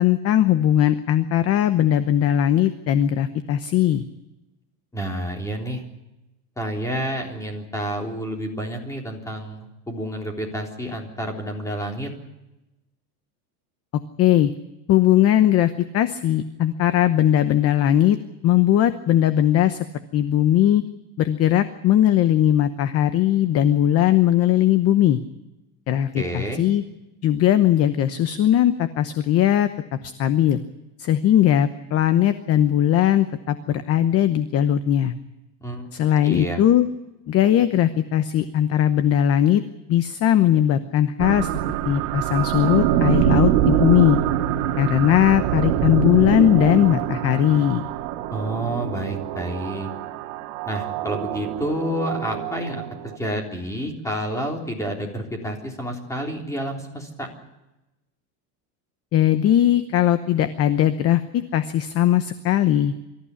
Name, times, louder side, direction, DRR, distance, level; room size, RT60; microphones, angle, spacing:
voice 1, 0.0-4.0 14.2-14.5 14.9-18.2 18.4-19.9 20.1-20.8 21.2-25.2 25.9-26.8 27.2-29.7 30.0-30.6 31.0-35.1 35.9-36.9 37.3-39.6 39.9-41.5 41.8-44.2 44.8-47.9 59.1-62.9, left 11 dB, 30° left, 12 dB, 0.9 m, -19 dB
voice 2, 4.9-5.8 6.6-12.1 26.2-26.6 35.6-35.9 36.2-36.6 48.3-49.9 50.7-57.3, equal, 5° left, 2 dB, 3.6 m, -29 dB
sound 1, 41.2-53.2, right 12 dB, 65° right, 1.9 m, -24 dB
24.5 x 14.5 x 9.7 m, 0.98 s
supercardioid pair, 160°, 47 cm